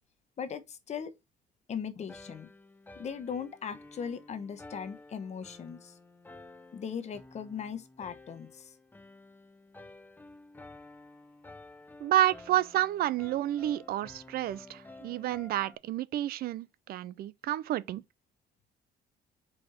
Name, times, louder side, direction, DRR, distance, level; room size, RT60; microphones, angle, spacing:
voice 1, 0.4-1.1 1.7-2.5 3.0-5.9 6.7-8.7, left 7 dB, 40° left, 1.1 m, -39 dB
sound 1, 2.1-15.8, left 2 dB, 10° left, 0.7 m, -52 dB
voice 2, 12.0-18.0, right 13 dB, 65° right, 0.5 m, -30 dB
4.9 x 4.3 x 5.8 m
cardioid pair, 110°, 17 cm